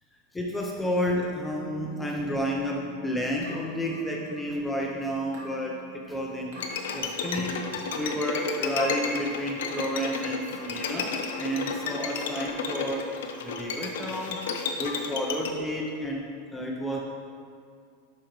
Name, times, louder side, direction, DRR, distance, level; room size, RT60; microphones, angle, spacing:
voice 1, 0.3-6.6 6.9-7.6 7.9-13.1 13.4-14.4 14.8-17.0, equal, 5° left, -1 dB, 0.4 m, -31 dB
Bass guitar, 0.8-7.0, right 2 dB, 15° right, 1.0 m, -44 dB
sound 1, 3.4-4.5 5.3-5.6 6.5-6.7 7.6-7.9 8.8-9.1 9.7-10.0 10.5-10.8 11.7-12.0, equal, 80° right, 1.5 m, -47 dB
Bowed string instrument, 6.6-15.5, left 5 dB, 85° left, 0.7 m, -32 dB
8.8 x 5.1 x 3.0 m, 2.3 s
supercardioid pair, 165°, 0 cm